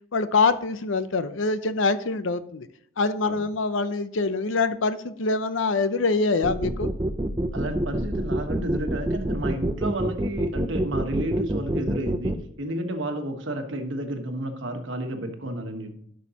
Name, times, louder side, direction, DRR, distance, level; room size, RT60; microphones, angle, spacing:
voice 1, 0.1-2.7 3.0-6.9, left 3 dB, 70° left, 12 dB, 0.6 m, -24 dB
sound 1, 6.4-12.4, right 1 dB, 20° right, 0.5 m, -26 dB
voice 2, 7.5-15.9, right 1 dB, 65° right, 5 dB, 1.3 m, -31 dB
11.5 x 6.2 x 2.9 m, 0.68 s
head